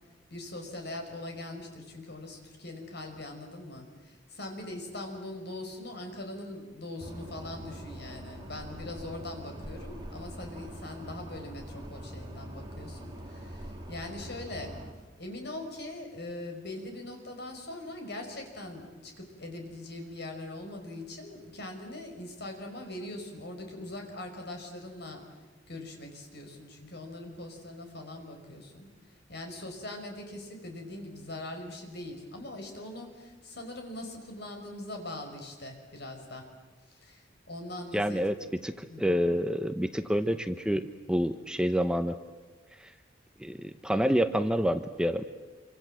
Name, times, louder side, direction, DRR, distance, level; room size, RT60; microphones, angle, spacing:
voice 1, 0.3-14.8 15.2-25.2 25.7-28.9 29.3-36.5 36.9-38.2 38.9-39.2, left 1 dB, 60° left, 4 dB, 5.5 m, -41 dB
sound 1, 7.0-14.9, right 1 dB, 25° right, 3.4 m, -43 dB
voice 2, 37.9-38.3 38.6-42.2 42.8-42.9 43.4-45.2, equal, 5° right, 9 dB, 0.8 m, -28 dB
27.5 x 25.0 x 7.7 m, 1.3 s
head